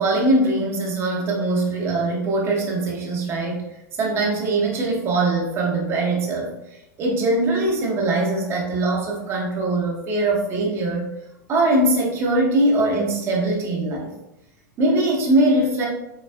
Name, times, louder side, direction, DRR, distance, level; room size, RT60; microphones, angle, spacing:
voice 1, 0.0-3.7 4.0-6.5 7.0-11.1 11.5-14.1 14.8-15.9, right 2 dB, 25° right, -2 dB, 0.8 m, -21 dB
4.0 x 2.3 x 2.2 m, 0.91 s
figure-of-eight pair, 90°, 10 cm